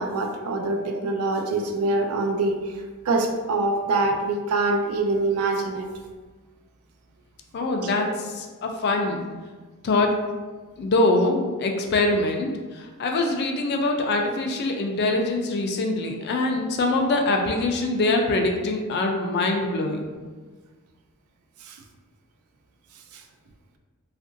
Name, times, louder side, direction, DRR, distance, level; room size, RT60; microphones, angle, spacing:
voice 1, 0.0-2.6 3.1-5.9 21.7-21.8 23.1-23.2, right 2 dB, 80° right, 4 dB, 0.4 m, -24 dB
voice 2, 7.5-9.2 9.8-10.2 10.8-20.1, left 2 dB, 50° left, 3 dB, 0.4 m, -24 dB
2.8 x 2.5 x 2.5 m, 1.4 s
head